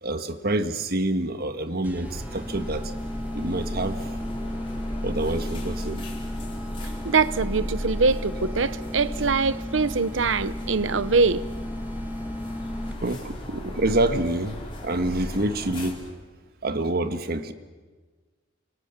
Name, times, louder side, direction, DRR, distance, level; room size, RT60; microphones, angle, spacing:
voice 1, 0.0-2.9 3.3-4.0 5.0-6.0 13.0-16.0 16.6-17.5, right 2 dB, 55° right, 1.5 m, -27 dB
sound 1, 1.8-13.3, left 1 dB, 10° right, 1.4 m, -36 dB
sound 2, 2.0-15.9, equal, 30° left, 5.1 m, -35 dB
voice 2, 7.0-11.4, right 4 dB, 80° right, 0.9 m, -23 dB
29.0 x 26.0 x 6.9 m
head